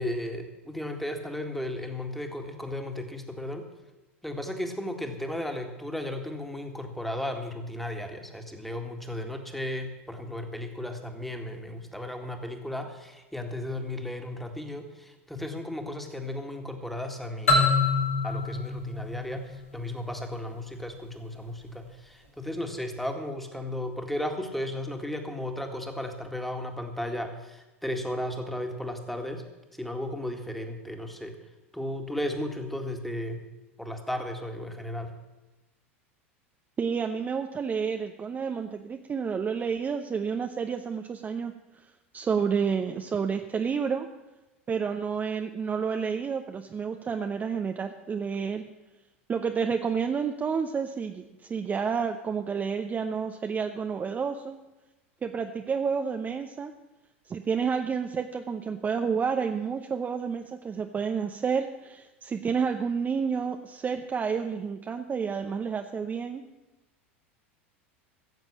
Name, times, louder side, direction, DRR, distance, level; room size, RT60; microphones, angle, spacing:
voice 1, 0.0-3.7 4.2-17.8 18.2-29.4 29.8-31.4 31.7-33.4 33.8-35.1, left 1 dB, ahead, 5 dB, 1.9 m, -35 dB
sound 1, 17.5-20.2, left 3 dB, 85° left, 3.3 m, -26 dB
voice 2, 36.8-41.5 42.1-44.1 44.7-48.6 49.3-54.6 55.2-56.7 57.3-66.4, right 6 dB, 25° right, 6 dB, 0.7 m, -30 dB
15.5 x 7.3 x 7.3 m, 1.1 s
figure-of-eight pair, 85°, 7 cm